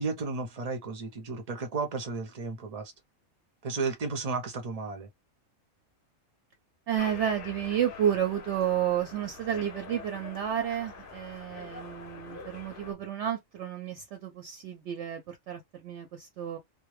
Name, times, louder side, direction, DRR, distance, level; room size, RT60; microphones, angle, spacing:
voice 1, 0.0-2.9 3.6-5.1, right 4 dB, 40° right, 0.5 m, -33 dB
voice 2, 6.9-16.6, right 9 dB, 70° right, 0.8 m, -31 dB
sound 1, 7.0-12.9, left 4 dB, 55° left, 0.6 m, -45 dB
2.2 x 2.1 x 3.0 m
omnidirectional pair, 1.4 m